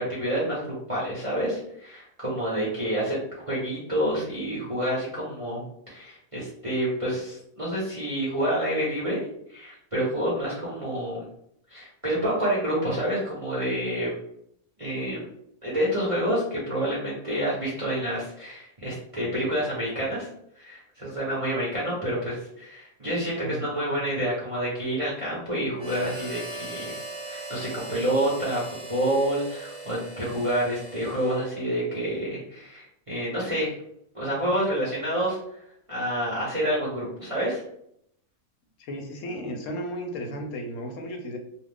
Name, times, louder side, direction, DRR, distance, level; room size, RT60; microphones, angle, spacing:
voice 1, 0.0-3.2 3.5-5.6 5.9-9.2 9.5-11.2 11.7-14.2 14.8-15.2 15.6-20.3 20.6-26.9 27.3-28.6 28.9-33.8 34.1-35.4 35.9-37.6, right 1 dB, 30° right, -7 dB, 0.7 m, -28 dB
Harmonica, 25.8-31.8, right 2 dB, 50° right, 0.9 m, -39 dB
voice 2, 38.8-41.4, equal, 65° left, 4 dB, 0.9 m, -34 dB
2.4 x 2.4 x 3.4 m, 0.72 s
omnidirectional pair, 1.6 m